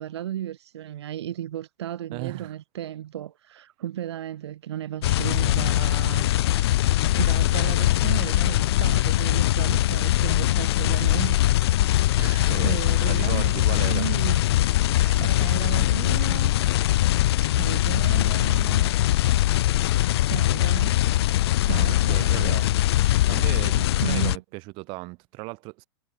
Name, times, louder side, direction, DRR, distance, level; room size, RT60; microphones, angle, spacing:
voice 1, 0.0-6.6 7.2-11.6 12.2-14.4 14.9-16.6 17.4-18.9 20.2-21.0 21.6-22.7 24.0-24.4, right 11 dB, 85° right, 2.0 m, -34 dB
voice 2, 2.1-2.5 12.2-14.1 21.7-22.6 23.3-25.8, right 26 dB, 40° right, 5.2 m, -36 dB
sound 1, 5.0-24.4, left 15 dB, 70° left, 0.5 m, -22 dB
sound 2, 6.9-17.2, left 14 dB, 30° left, 2.7 m, -51 dB
supercardioid pair, 150°, 14 cm